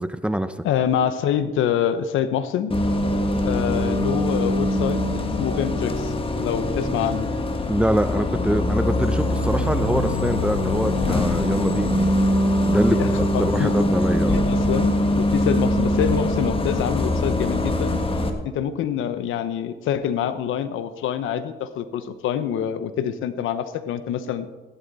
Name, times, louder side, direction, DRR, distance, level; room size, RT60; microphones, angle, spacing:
voice 1, 0.0-0.5 7.7-12.1 12.6-13.0 13.4-14.4, right 1 dB, 5° right, 11 dB, 0.7 m, -24 dB
voice 2, 0.6-2.7 3.4-6.1 6.4-7.3 12.9-13.7 14.3-18.0 18.4-24.5, left 9 dB, 85° left, 12 dB, 0.9 m, -26 dB
Bus, 2.7-18.3, left 1 dB, 25° left, 1.4 m, -23 dB
15.0 x 11.0 x 4.1 m, 1.2 s
cardioid pair, 90°, 20 cm